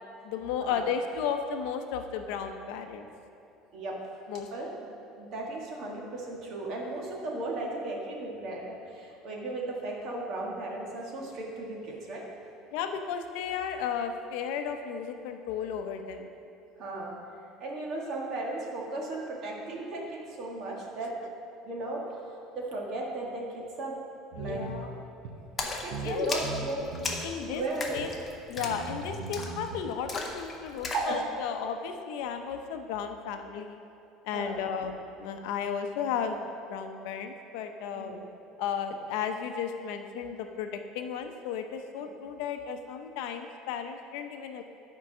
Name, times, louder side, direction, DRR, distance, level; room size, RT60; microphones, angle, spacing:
voice 1, 0.2-3.1 4.3-4.5 12.7-16.3 24.4-25.0 26.0-26.3 27.2-27.6 27.9-28.1 28.5-33.8 34.2-38.1 38.6-44.6, left 7 dB, 70° left, 6 dB, 0.6 m, -34 dB
voice 2, 4.5-4.9 5.2-12.2 16.8-17.1 17.6-21.1 21.6-22.2 22.5-24.0 24.4-24.9 25.6-26.9 27.4-28.1 30.9-31.1 34.3-34.6 37.9-38.2, right 2 dB, 40° right, -2 dB, 1.5 m, -35 dB
sound 1, 24.3-24.8 25.2-25.4 25.9-26.2 26.4-27.2 28.0-28.1 28.6-29.8, right 4 dB, 90° right, 0.9 m, -38 dB
Splash splatter, 25.6-31.1, left 3 dB, 15° left, 0.7 m, -37 dB
10.0 x 4.7 x 6.1 m, 2.7 s
cardioid pair, 175°, 0 cm